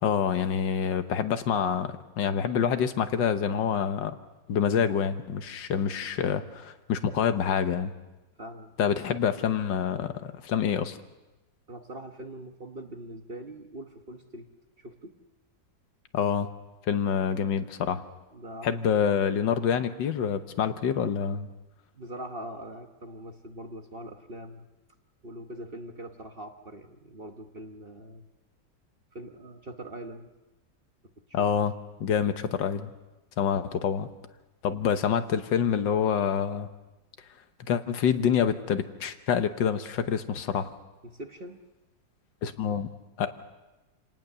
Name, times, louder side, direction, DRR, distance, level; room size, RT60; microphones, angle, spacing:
voice 1, 0.0-4.2 4.5-7.9 8.8-11.0 16.1-16.5 16.9-18.0 18.6-21.5 31.3-31.7 32.0-32.9 33.4-34.1 34.6-36.7 37.7-40.7 42.4-42.9 43.2-43.3, left 7 dB, 75° left, 9 dB, 1.7 m, -27 dB
voice 2, 8.4-8.7 11.7-14.5 14.8-15.1 18.3-19.0 22.0-24.7 25.2-28.2 29.1-30.3 31.4-31.5 41.0-41.6, right 1 dB, 35° right, 5 dB, 1.1 m, -42 dB
27.0 x 18.5 x 6.7 m, 1.1 s
omnidirectional pair, 2.0 m